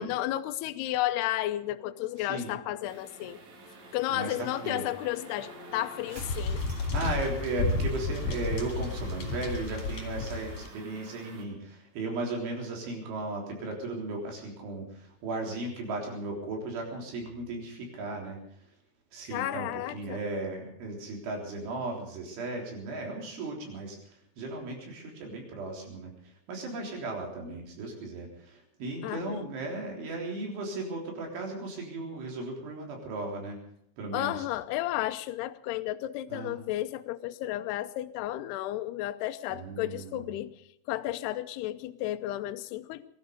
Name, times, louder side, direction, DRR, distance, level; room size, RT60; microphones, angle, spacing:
voice 1, 0.0-3.4 3.9-6.6 19.2-20.2 29.0-29.5 34.1-40.5 40.9-43.0, left 14 dB, 80° left, 2.5 m, -33 dB
sound 1, 1.4-8.0, equal, 30° right, 2.2 m, -46 dB
voice 2, 2.2-2.5 4.1-4.8 6.9-18.4 19.1-33.6 34.0-34.5 36.3-36.6 39.5-40.3, right 2 dB, 80° right, 6.1 m, -36 dB
sound 2, 2.8-11.4, right 4 dB, 65° right, 4.4 m, -52 dB
sound 3, 6.2-10.7, left 3 dB, 45° left, 3.2 m, -32 dB
21.5 x 13.0 x 5.2 m
omnidirectional pair, 5.3 m